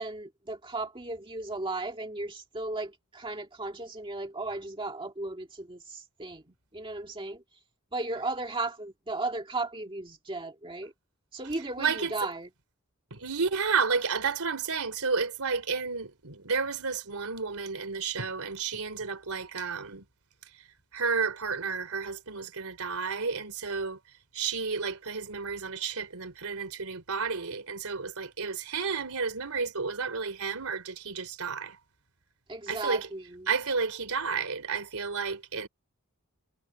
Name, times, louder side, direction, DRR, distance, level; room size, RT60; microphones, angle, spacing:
voice 1, 0.0-7.4 7.9-10.9 11.3-12.5 32.5-33.5, right 2 dB, 25° right, 1.9 m, -35 dB
voice 2, 11.8-12.1 13.1-20.0 20.9-24.0 24.3-31.8 32.7-33.1 33.5-35.7, right 5 dB, 75° right, 3.5 m, -31 dB
head